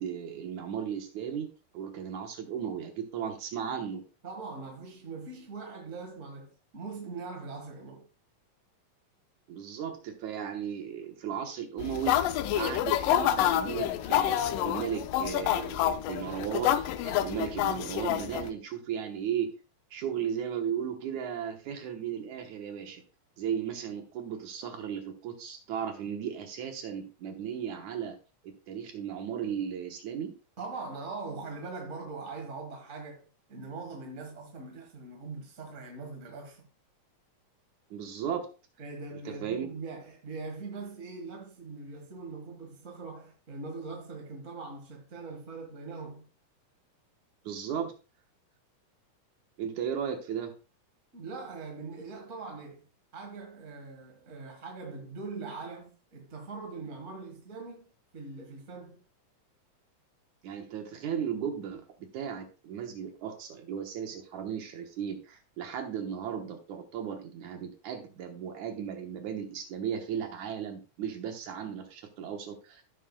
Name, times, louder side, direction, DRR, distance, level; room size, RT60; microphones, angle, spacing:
voice 1, 0.0-1.5 1.7-4.0 9.5-12.2 12.5-19.5 19.9-23.0 23.4-28.2 28.4-30.3 37.9-38.5 39.3-39.7 47.4-47.9 49.6-50.5 60.4-72.8, right 8 dB, 65° right, 2.3 m, -35 dB
voice 2, 4.2-8.1 30.6-36.7 38.8-46.2 51.1-52.8 53.1-57.9 58.1-59.0, right 3 dB, 35° right, 1.3 m, -42 dB
sound 1, 11.8-18.5, left 12 dB, 80° left, 2.2 m, -28 dB
15.0 x 6.4 x 2.2 m
omnidirectional pair, 3.9 m